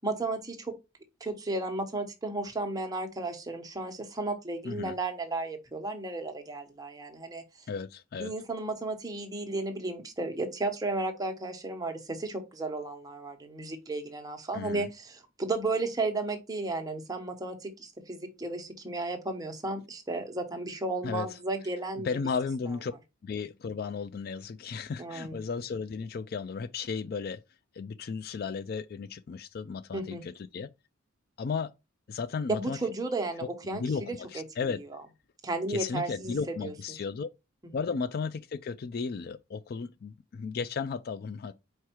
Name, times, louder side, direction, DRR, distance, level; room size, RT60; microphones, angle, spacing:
voice 1, 0.0-0.7 1.2-7.4 8.1-22.1 25.0-25.4 29.9-30.2 32.5-34.4 34.9-35.0 35.4-36.3 36.6-36.7 37.6-37.7, right 2 dB, 20° right, 1.1 m, -34 dB
voice 2, 4.6-5.0 7.7-8.3 14.5-14.9 21.0-21.3 22.0-22.9 23.2-27.4 27.7-30.7 31.4-31.7 32.1-32.8 33.7-34.8 35.7-37.3 37.7-41.5, left 5 dB, 50° left, 0.3 m, -34 dB
4.8 x 4.6 x 4.5 m
head